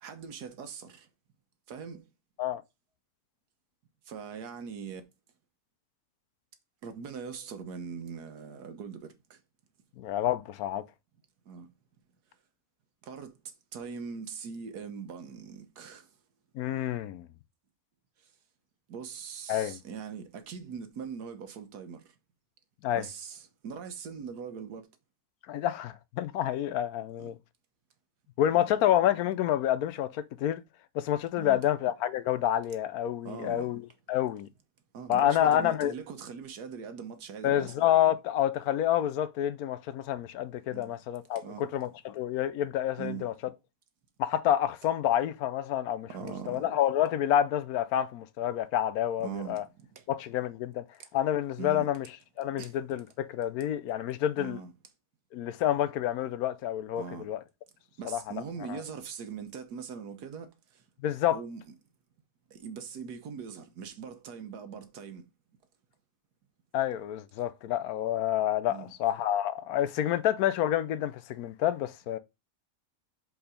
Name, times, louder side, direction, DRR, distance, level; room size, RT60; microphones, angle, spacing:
voice 1, 0.0-1.1 1.7-2.1 4.0-5.0 6.8-9.4 11.5-11.7 13.0-16.1 18.2-18.3 18.9-22.1 22.9-24.9 27.2-27.3 28.5-28.8 31.4-31.6 33.2-33.7 34.9-37.7 40.7-40.9 41.3-41.7 43.0-43.3 46.1-46.6 49.2-50.0 51.6-51.9 52.6-52.7 54.4-54.7 57.0-57.3 58.0-60.8 61.3-61.7 62.5-65.2 68.7-68.9, right 6 dB, 85° right, 1.6 m, -41 dB
voice 2, 10.0-10.8 16.5-17.3 19.5-19.8 22.8-23.0 25.5-27.4 28.4-30.6 30.9-33.8 34.1-34.5 35.1-35.9 37.4-43.3 44.2-49.6 50.1-50.8 51.1-52.1 52.4-54.6 55.3-57.4 58.0-58.2 58.7-58.8 61.0-61.4 66.7-72.2, left 11 dB, 75° left, 1.0 m, -28 dB
5.3 x 4.7 x 5.0 m
omnidirectional pair, 1.6 m